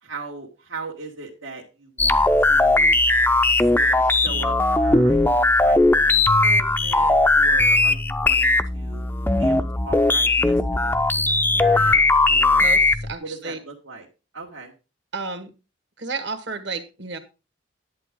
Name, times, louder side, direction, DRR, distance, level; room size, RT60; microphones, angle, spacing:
voice 1, 0.0-3.0 3.6-9.0 9.4-11.3 11.5-12.7 13.2-14.1 14.3-14.7, right 3 dB, 80° right, -3 dB, 2.0 m, -39 dB
sound 1, 2.0-13.1, left 2 dB, 10° left, 0.5 m, -18 dB
voice 2, 12.6-13.6 15.1-15.5 16.0-17.2, right 4 dB, 60° right, 8 dB, 1.7 m, -32 dB
10.5 x 8.3 x 3.7 m, 0.29 s
head